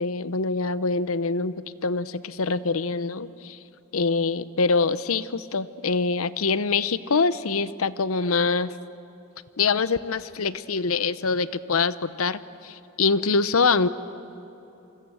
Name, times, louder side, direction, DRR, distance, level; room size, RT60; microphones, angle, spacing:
voice 1, 0.0-3.6 3.9-8.7 9.6-13.9, left 4 dB, 85° left, 15 dB, 0.8 m, -24 dB
27.0 x 24.5 x 7.9 m, 2.8 s
head